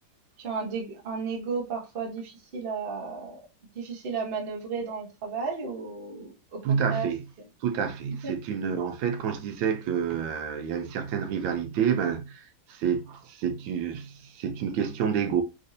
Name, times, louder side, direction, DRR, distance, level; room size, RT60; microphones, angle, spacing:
voice 1, 0.4-3.4 3.7-7.1 8.2-8.3, right 5 dB, 45° right, 0.7 m, -33 dB
voice 2, 6.6-7.2 7.6-15.4, right 7 dB, 75° right, 1.2 m, -28 dB
4.0 x 2.6 x 2.5 m
omnidirectional pair, 2.2 m